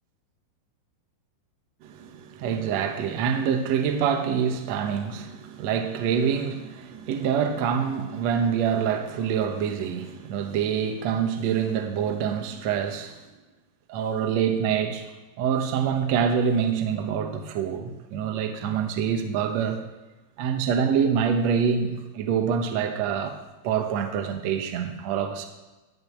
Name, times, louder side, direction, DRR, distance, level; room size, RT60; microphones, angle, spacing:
voice 1, 1.8-13.2 13.9-15.1 15.4-19.8 20.4-23.4 23.6-25.5, right 7 dB, 80° right, 1.5 m, -26 dB
12.5 x 5.4 x 8.3 m
omnidirectional pair, 4.7 m